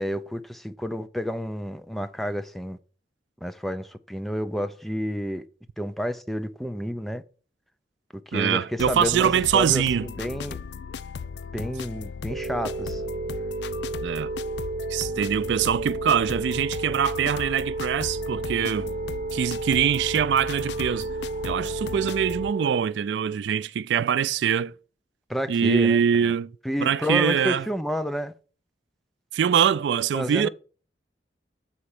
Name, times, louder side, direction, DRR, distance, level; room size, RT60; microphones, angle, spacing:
voice 1, 0.0-2.8 3.4-5.4 5.8-7.2 8.3-10.6 11.5-13.0 25.3-26.0 26.6-28.3 30.1-30.5, equal, ahead, 0.4 m, -30 dB
voice 2, 8.3-10.1 14.0-14.3 14.9-18.9 19.3-21.1 21.4-24.7 25.5-26.5 26.8-27.7 29.3-30.5, right 8 dB, 80° right, 0.3 m, -23 dB
sound 1, 8.8-22.5, left 6 dB, 70° left, 0.4 m, -37 dB
sound 2, 12.3-22.8, right 3 dB, 60° right, 0.9 m, -32 dB
6.9 x 4.3 x 6.5 m
head